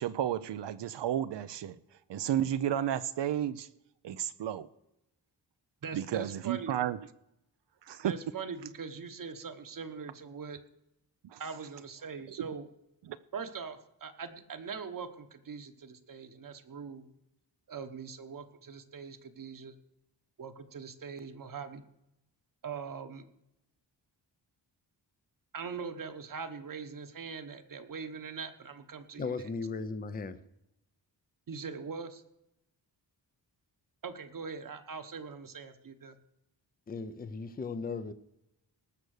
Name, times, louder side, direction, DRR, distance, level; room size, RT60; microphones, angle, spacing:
voice 1, 0.0-1.8 2.1-3.7 4.0-4.7 5.9-7.0 7.9-8.1 11.2-11.4 12.4-12.5 13.1-13.2, right 10 dB, 75° right, 0.6 m, -32 dB
voice 2, 5.8-6.8 8.0-10.6 11.4-12.7 13.3-17.1 17.7-19.7 20.4-21.8 22.6-23.3 25.5-29.5 31.5-32.2 34.0-36.2, right 5 dB, 50° right, 1.2 m, -42 dB
voice 3, 29.2-30.4 36.9-38.1, left 4 dB, 20° left, 0.6 m, -36 dB
19.0 x 6.7 x 6.5 m
wide cardioid pair, 165°, 43 cm